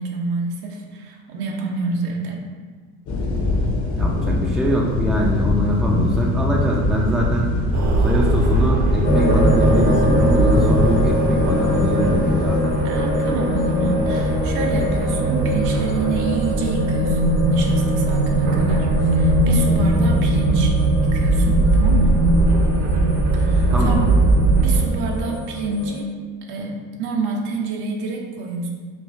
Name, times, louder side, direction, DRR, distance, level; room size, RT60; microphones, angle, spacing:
voice 1, 0.0-2.4 12.8-20.8 21.0-22.2 23.3-24.0 24.6-26.1 26.5-28.7, right 3 dB, 75° right, 1 dB, 0.7 m, -27 dB
sound 1, 3.1-12.6, left 2 dB, 40° left, 0.7 m, -23 dB
voice 2, 4.0-7.6 8.0-12.8 23.7-24.0, equal, ahead, -2 dB, 0.3 m, -22 dB
sound 2, 7.7-24.8, right 2 dB, 40° right, 0.7 m, -20 dB
sound 3, 9.0-26.0, left 1 dB, 90° left, 1.0 m, -25 dB
4.6 x 2.5 x 2.4 m, 1.4 s
supercardioid pair, 75°, 42 cm